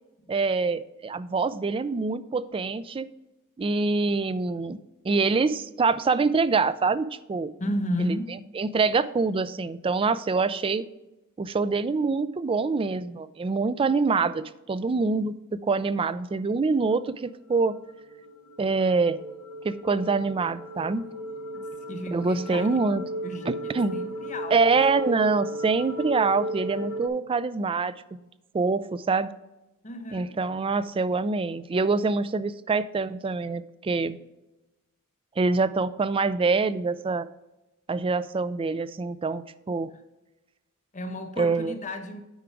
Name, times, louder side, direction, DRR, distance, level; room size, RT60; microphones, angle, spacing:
voice 1, 0.3-3.1 3.6-4.8 5.0-7.5 8.0-8.2 8.6-10.9 11.4-17.8 18.6-19.2 19.6-21.1 22.1-23.0 23.5-24.0 24.5-28.2 28.5-29.3 30.1-34.2 35.4-37.3 37.9-39.9 41.4-41.7, right 4 dB, 25° right, 0.3 m, -25 dB
voice 2, 7.6-8.4 21.5-21.6 21.9-22.8 23.2-24.6 29.8-30.4 40.9-42.2, equal, 35° left, 1.0 m, -33 dB
sound 1, 17.4-27.1, equal, 75° left, 0.9 m, -35 dB
9.2 x 5.0 x 4.6 m
head